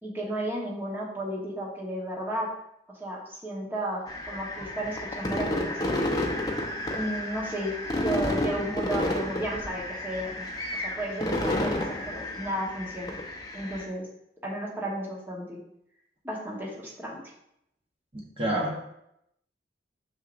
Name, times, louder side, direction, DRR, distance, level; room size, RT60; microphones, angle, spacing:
voice 1, 0.0-2.5 2.9-6.0 6.9-10.5 10.7-13.2 13.5-14.0 14.4-15.6 16.2-17.2, right 1 dB, 10° right, -4 dB, 1.2 m, -33 dB
sound 1, 4.1-13.8, left 1 dB, 20° left, 0.8 m, -31 dB
voice 2, 18.1-18.8, right 1 dB, 30° right, -2 dB, 1.0 m, -29 dB
6.6 x 6.1 x 2.6 m, 0.78 s
head